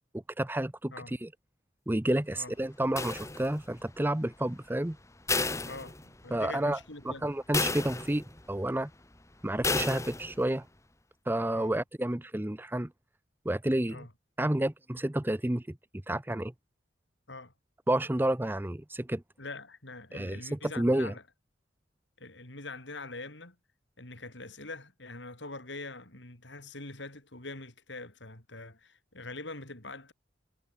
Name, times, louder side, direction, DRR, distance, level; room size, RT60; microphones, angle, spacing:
voice 1, 0.4-1.3 1.9-5.0 6.3-6.8 7.0-8.9 9.4-10.6 11.3-12.9 13.5-14.0 14.4-15.6 16.1-16.5 17.9-19.2 20.1-21.1, right 1 dB, 10° right, 0.6 m, -30 dB
sound 1, 3.0-3.8 5.3-6.4 6.8-6.9 7.5-8.4 9.6-10.4, left 3 dB, 15° left, 1.9 m, -32 dB
voice 2, 5.7-7.3 11.5-11.8 13.9-14.1 17.3-17.5 19.4-21.2 22.2-23.6 24.0-30.1, left 2 dB, 70° left, 5.3 m, -44 dB
head